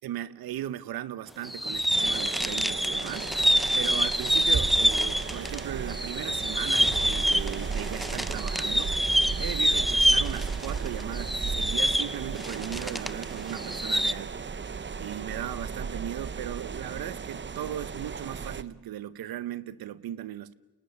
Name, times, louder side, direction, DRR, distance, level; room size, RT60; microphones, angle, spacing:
voice 1, 0.0-3.4 3.7-9.0 9.4-14.4 15.0-20.5, right 12 dB, 85° right, 0.9 m, -37 dB
sound 1, 1.4-5.6 5.9-13.2 13.5-14.1, equal, ahead, 0.8 m, -26 dB
sound 2, 1.9-18.6, right 5 dB, 30° right, 0.9 m, -35 dB
29.5 x 27.5 x 6.9 m
cardioid pair, 70°, 35 cm